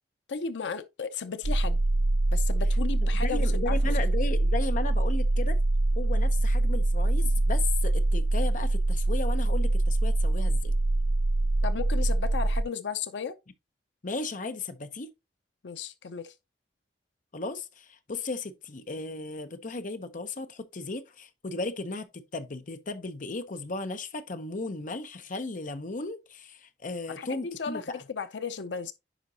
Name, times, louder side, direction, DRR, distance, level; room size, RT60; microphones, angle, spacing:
voice 1, 0.3-1.8 2.3-3.9 11.6-13.4 15.6-16.3 27.1-28.9, left 6 dB, 90° left, 0.6 m, -35 dB
sound 1, 1.4-12.6, right 2 dB, 65° right, 0.5 m, -24 dB
voice 2, 3.1-5.6 6.0-10.7 14.0-15.1 17.3-28.0, left 3 dB, 50° left, 0.8 m, -35 dB
10.0 x 5.2 x 2.8 m
head